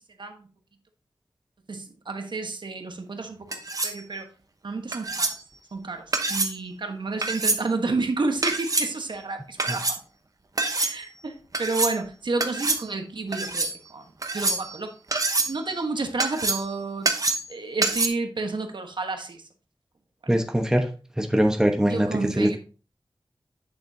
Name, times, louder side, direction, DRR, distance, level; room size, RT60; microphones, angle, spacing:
voice 1, 1.7-4.3 4.6-5.4 5.7-10.0 10.7-14.9 15.5-17.1 17.5-19.4 21.9-22.6, right 3 dB, 70° right, 5 dB, 1.2 m, -30 dB
sound 1, 3.5-4.0 4.9-5.4 6.1-6.6 7.2-7.6 8.4-8.9 9.6-10.0 10.6-10.9 11.5-12.0 12.4-12.8 13.3-13.7 14.2-14.8 15.1-15.6 16.2-16.7 17.0-17.5 17.8-18.1, right 3 dB, 45° right, 1.0 m, -26 dB
voice 2, 20.3-20.9 21.2-22.6, equal, 5° right, 4 dB, 1.1 m, -22 dB
8.7 x 7.0 x 2.7 m, 0.34 s
wide cardioid pair, 80°, 8 cm